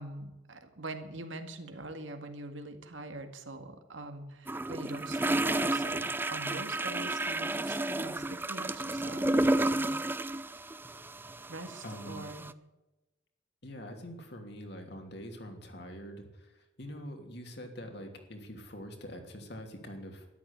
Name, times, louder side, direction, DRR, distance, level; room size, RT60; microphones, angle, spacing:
voice 1, 0.0-10.0 11.5-12.6, right 2 dB, 80° right, 6 dB, 2.0 m, -44 dB
sound 1, 4.5-12.5, right 2 dB, 10° right, 0.4 m, -31 dB
voice 2, 11.8-12.3 13.6-20.3, equal, 60° left, 3 dB, 2.9 m, -44 dB
13.0 x 11.5 x 8.2 m, 1.0 s
head